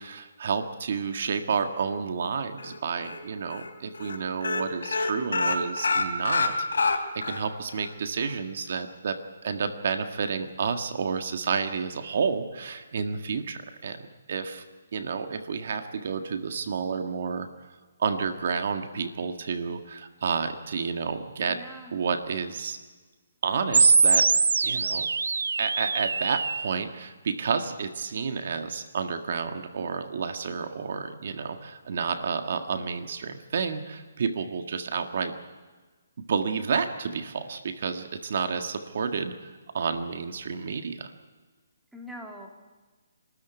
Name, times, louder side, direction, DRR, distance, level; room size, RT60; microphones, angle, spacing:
voice 1, 0.0-14.6 14.9-17.5 18.0-21.6 21.9-22.8 23.4-24.3 24.6-25.1 25.6-35.3 36.2-39.5 39.7-41.1, right 5 dB, 55° right, 7 dB, 1.7 m, -30 dB
sound 1, 2.6-3.2 3.5-3.7 3.9-4.2 4.4-7.4 7.8-7.9 8.2-8.3, left 3 dB, 80° left, 3.4 m, -26 dB
voice 2, 21.5-21.9 41.9-42.5, equal, ahead, 0 dB, 2.5 m, -42 dB
sound 2, 23.7-26.7, right 4 dB, 85° right, 0.6 m, -22 dB
26.0 x 13.5 x 9.4 m, 1.4 s
hypercardioid pair, 165°, 0 cm